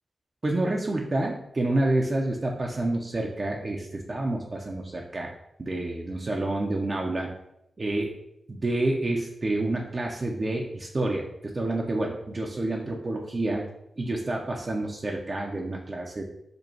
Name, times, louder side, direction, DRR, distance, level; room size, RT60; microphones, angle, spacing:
voice 1, 0.4-5.3 5.6-7.3 7.8-8.1 8.5-13.7 14.0-16.2, right 2 dB, 40° right, 0 dB, 0.5 m, -28 dB
5.1 x 2.2 x 4.3 m, 0.80 s
wide cardioid pair, 85°, 0 cm